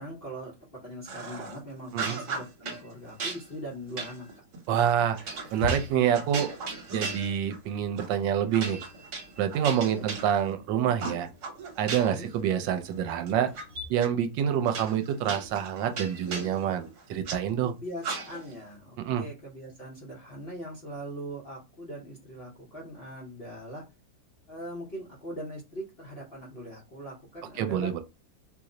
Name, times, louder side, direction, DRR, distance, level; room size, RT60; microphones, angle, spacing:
voice 1, 0.0-4.4 9.8-10.1 12.0-12.3 17.6-23.8 24.5-27.9, equal, 50° left, 0.7 m, -41 dB
sound 1, 1.1-1.6 1.9-2.8 3.2-7.7 8.0-8.2 8.5-10.6 11.0-12.3 12.6-13.6 14.0-14.1 14.7-17.4 18.0-18.6, right 4 dB, 65° right, 1.3 m, -37 dB
voice 2, 4.7-5.2 5.5-6.5 6.9-8.8 9.4-11.3 11.8-13.5 13.9-17.7 19.0-19.2 27.6-28.0, right 9 dB, 80° right, 1.3 m, -27 dB
sound 2, 5.1-13.9, left 2 dB, 50° right, 1.0 m, -44 dB
3.0 x 2.0 x 3.7 m
omnidirectional pair, 2.0 m